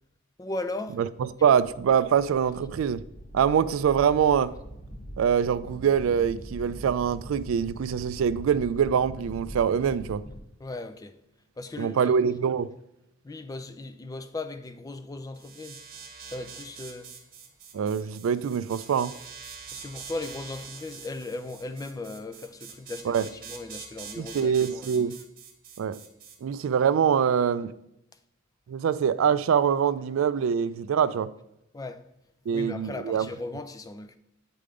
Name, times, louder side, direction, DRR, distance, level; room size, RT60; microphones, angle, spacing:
voice 1, 0.4-1.0 10.6-11.2 11.6-12.2 13.2-15.8 16.3-17.1 19.7-25.1 31.7-32.0 32.5-34.2, left 2 dB, 15° left, 0.3 m, -37 dB
voice 2, 1.0-3.0 3.3-4.5 5.2-10.2 11.8-12.7 17.7-19.1 23.1-23.2 24.2-25.2 25.8-26.0 26.4-27.7 28.7-31.3 32.5-33.3, right 7 dB, 75° right, 0.3 m, -24 dB
sound 1, 1.4-10.4, equal, 40° left, 1.3 m, -43 dB
sound 2, 15.3-26.4, right 6 dB, 45° right, 1.0 m, -45 dB
7.7 x 3.5 x 4.9 m
head